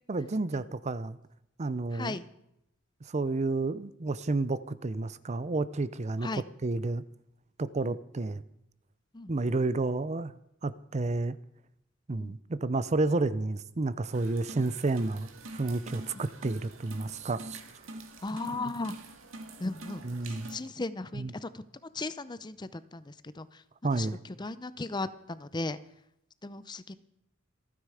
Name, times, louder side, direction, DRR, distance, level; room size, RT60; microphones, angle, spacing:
voice 1, 0.1-1.2 1.6-2.1 3.1-6.3 6.6-7.0 7.6-8.4 9.3-10.3 10.6-11.3 12.1-17.6 20.0-20.5 21.1-21.3 23.8-24.2, right 3 dB, 35° right, 16 dB, 0.5 m, -30 dB
voice 2, 1.9-2.2 6.2-6.4 7.8-8.0 9.1-9.3 12.2-12.3 18.2-19.0 19.6-21.6 21.9-23.6 23.9-25.8 26.4-27.0, left 2 dB, 20° left, 14 dB, 0.6 m, -37 dB
sound 1, 14.1-20.6, right 2 dB, 75° right, 1.9 m, -45 dB
26.5 x 9.9 x 4.9 m, 0.80 s
head